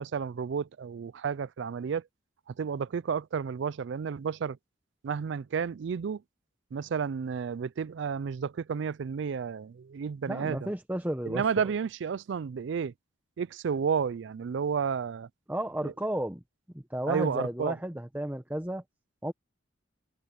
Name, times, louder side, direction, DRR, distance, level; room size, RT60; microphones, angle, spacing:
voice 1, 0.0-2.0 2.5-4.6 5.0-6.2 6.7-10.7 11.2-12.9 13.4-15.3 15.8-15.9 17.1-17.8, right 6 dB, 65° right, 0.3 m, -31 dB
voice 2, 10.3-11.4 15.5-16.4 16.9-18.8 19.2-19.3, right 1 dB, 10° right, 0.8 m, -32 dB
head